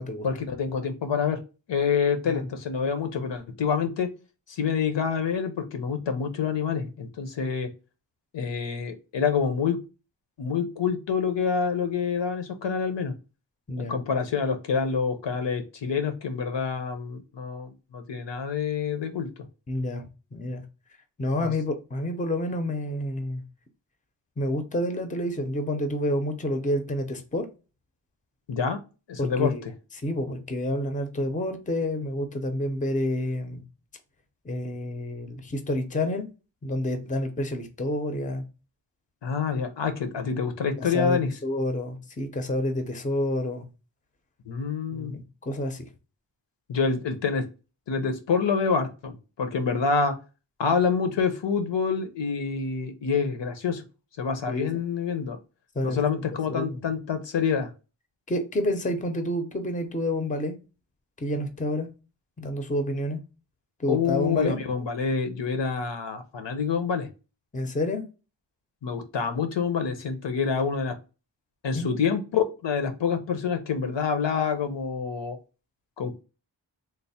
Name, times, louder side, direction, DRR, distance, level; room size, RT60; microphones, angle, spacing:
voice 1, 0.2-1.4 1.7-4.1 4.5-7.7 8.3-9.8 10.4-13.1 13.8-19.3 21.4-21.5 28.5-28.8 29.1-29.5 39.2-41.3 44.5-45.2 46.7-47.4 47.9-50.1 50.6-53.8 54.2-55.4 55.8-57.7 63.9-67.1 68.8-70.9 71.6-75.4 76.0-76.2, left 6 dB, 70° left, 7 dB, 0.7 m, -27 dB
voice 2, 19.7-20.6 21.2-23.4 24.4-27.5 29.2-29.6 30.0-33.6 34.4-36.3 36.6-38.4 40.8-43.7 44.9-45.9 54.5-54.8 55.7-56.0 56.3-56.8 58.3-60.6 61.2-61.9 62.4-63.2 63.8-64.6 67.5-68.0 70.6-70.7 71.7-71.9, left 1 dB, 15° left, 7 dB, 0.5 m, -29 dB
3.3 x 2.0 x 4.0 m, 0.32 s
wide cardioid pair, 90°, 45 cm